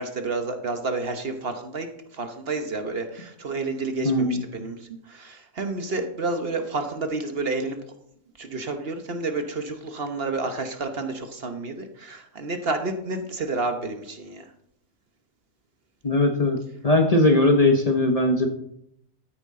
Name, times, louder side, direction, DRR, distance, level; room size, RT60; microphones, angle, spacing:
voice 1, 0.0-7.8 8.4-14.5, right 3 dB, 50° right, 6 dB, 1.1 m, -30 dB
voice 2, 4.0-4.4 16.0-16.6 16.8-18.5, left 2 dB, 30° left, 3 dB, 0.9 m, -19 dB
12.5 x 9.8 x 3.7 m, 0.74 s
omnidirectional pair, 1.4 m